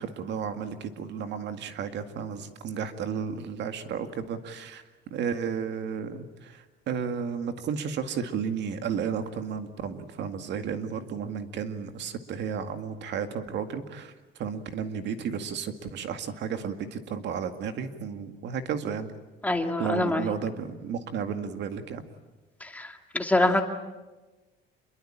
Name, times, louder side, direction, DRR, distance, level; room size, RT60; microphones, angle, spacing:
voice 1, 0.0-4.8 5.1-19.1 19.8-22.0, right 7 dB, 60° right, 8 dB, 2.1 m, -33 dB
voice 2, 19.4-20.3 22.6-23.6, left 1 dB, 5° left, 5 dB, 2.0 m, -25 dB
27.5 x 22.5 x 8.9 m, 1.2 s
cardioid pair, 165°, 21 cm